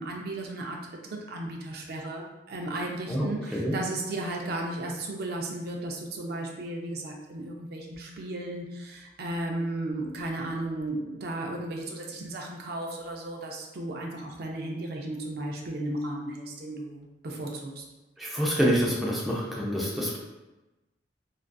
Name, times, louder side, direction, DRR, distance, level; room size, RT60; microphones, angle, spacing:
voice 1, 0.0-17.8, right 1 dB, 60° right, 1 dB, 0.4 m, -35 dB
voice 2, 3.1-3.8 18.2-20.2, equal, ahead, -5 dB, 0.4 m, -27 dB
2.4 x 2.3 x 2.2 m, 1.0 s
head